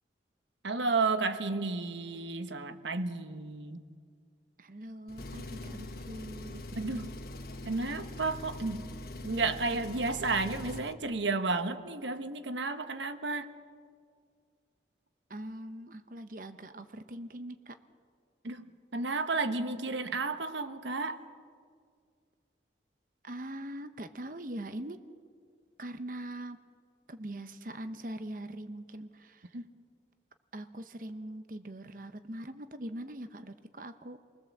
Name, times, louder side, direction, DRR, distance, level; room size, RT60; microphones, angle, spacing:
voice 1, 0.6-3.8 6.8-7.1 7.6-8.8 9.2-13.5 18.4-21.2 29.5-29.6, right 3 dB, 85° right, 9 dB, 1.3 m, -32 dB
voice 2, 4.6-6.6 15.3-17.7 23.2-25.0 25.8-26.6 27.1-29.6 30.5-34.2, right 1 dB, 45° right, 9 dB, 1.0 m, -42 dB
Engine, 5.1-10.9, left 1 dB, 55° left, 1.2 m, -43 dB
29.0 x 20.0 x 7.3 m, 2.1 s
head